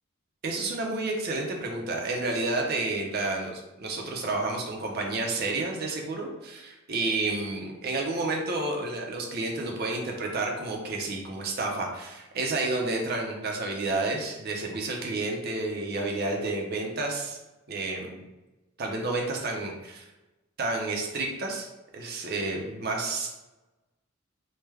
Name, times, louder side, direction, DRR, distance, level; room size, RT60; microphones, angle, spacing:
voice 1, 0.4-17.4 17.7-18.2 18.8-20.0 20.6-21.7 21.9-23.3, right 2 dB, 45° right, 0 dB, 0.5 m, -30 dB
3.2 x 2.1 x 3.3 m, 1.0 s
head